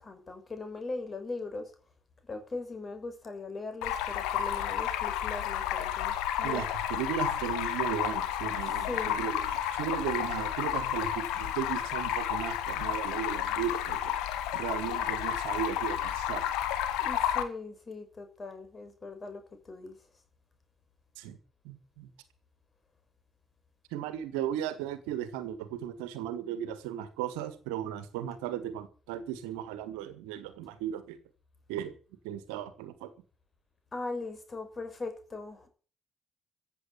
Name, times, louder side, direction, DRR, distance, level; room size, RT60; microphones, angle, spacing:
voice 1, 0.0-1.7 2.2-6.6 8.8-9.3 17.0-20.0 33.9-35.7, left 3 dB, 35° left, 5.8 m, -40 dB
Stream, 3.8-17.4, left 10 dB, 65° left, 1.8 m, -31 dB
voice 2, 6.4-14.1 14.5-16.4 21.2-21.4 21.6-22.1 23.9-31.2 31.7-31.9 32.2-33.1, right 10 dB, 70° right, 1.6 m, -36 dB
14.5 x 8.4 x 9.4 m
figure-of-eight pair, 45°, 0 cm